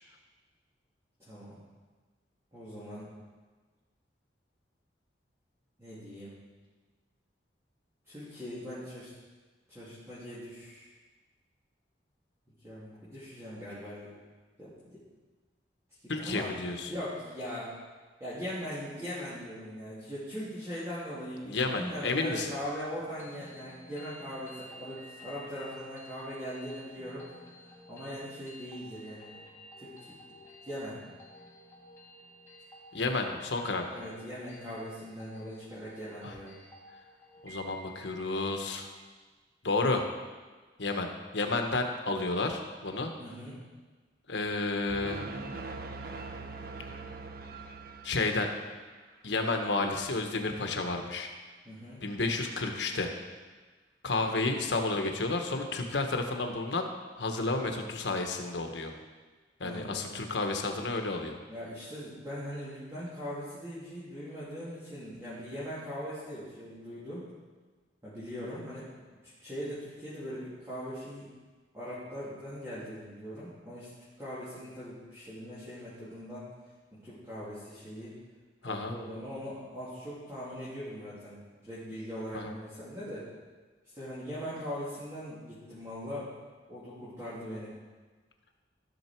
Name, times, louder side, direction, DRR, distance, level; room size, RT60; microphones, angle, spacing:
voice 1, 1.2-1.6 2.5-3.1 5.8-6.4 8.1-9.1 9.7-10.9 12.6-14.1 14.6-15.0 16.2-16.6 16.9-17.7 18.2-27.3 27.9-29.4 29.8-30.1 30.6-31.0 33.9-36.6 43.2-43.5 51.6-52.0 59.6-60.2 61.5-67.3 68.0-68.9 69.2-71.3 71.7-73.9 74.2-76.5 76.9-78.2 78.6-83.3 83.9-86.3 86.7-87.7, equal, 15° right, -13 dB, 3.0 m, -40 dB
voice 2, 16.1-16.9 21.4-22.5 32.9-33.9 36.2-36.3 37.4-38.9 39.6-40.1 40.8-41.1 41.3-43.1 44.3-45.2 48.0-48.5 49.2-51.3 52.0-53.1 54.0-56.9 57.2-58.9 59.6-61.4 78.6-78.9 82.3-82.5, left 3 dB, 80° left, 4 dB, 1.2 m, -31 dB
sound 1, 23.0-38.9, equal, 15° left, 2.2 m, -52 dB
sound 2, 44.9-48.7, right 3 dB, 55° right, 0.7 m, -42 dB
14.5 x 6.7 x 4.5 m, 1.4 s
head